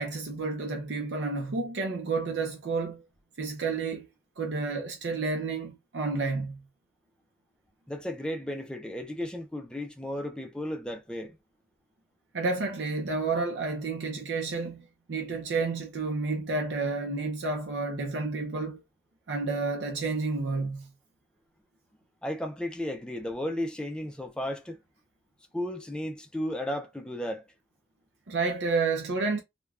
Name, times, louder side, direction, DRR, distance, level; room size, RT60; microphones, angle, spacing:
voice 1, 0.0-3.0 3.4-4.1 4.4-6.6 12.3-18.8 19.3-20.9 28.3-29.4, right 3 dB, 85° right, 0.6 m, -30 dB
voice 2, 7.9-11.4 22.2-24.8 25.5-27.5, left 1 dB, 5° left, 0.4 m, -34 dB
3.3 x 2.2 x 2.3 m
head